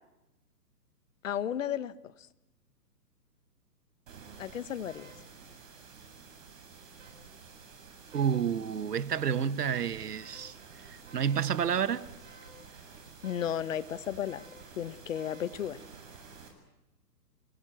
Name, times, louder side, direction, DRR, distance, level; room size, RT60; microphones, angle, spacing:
voice 1, 1.2-2.1 4.4-5.1 13.2-14.4 14.8-15.8, left 9 dB, 50° left, 1.2 m, -34 dB
sound 1, 4.1-16.5, right 4 dB, 50° right, 8.0 m, -51 dB
voice 2, 8.1-10.6 10.9-12.0, right 8 dB, 70° right, 1.4 m, -30 dB
28.5 x 19.0 x 9.0 m
hypercardioid pair, 145°, 49 cm